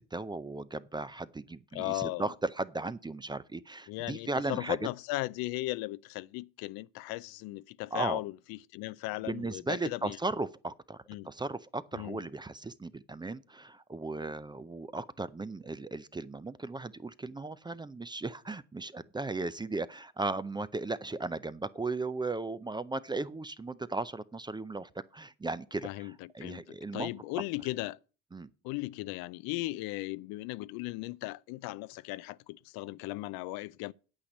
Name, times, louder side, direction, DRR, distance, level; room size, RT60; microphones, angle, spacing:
voice 1, 0.1-4.8 7.9-8.2 9.3-27.1 28.3-28.5, right 3 dB, 15° right, 0.4 m, -36 dB
voice 2, 1.7-2.3 3.9-10.2 11.1-11.3 11.9-12.2 25.8-26.1 26.4-28.0 28.6-33.9, left 19 dB, 75° left, 0.5 m, -37 dB
8.8 x 8.4 x 5.3 m
supercardioid pair, 95°, 36 cm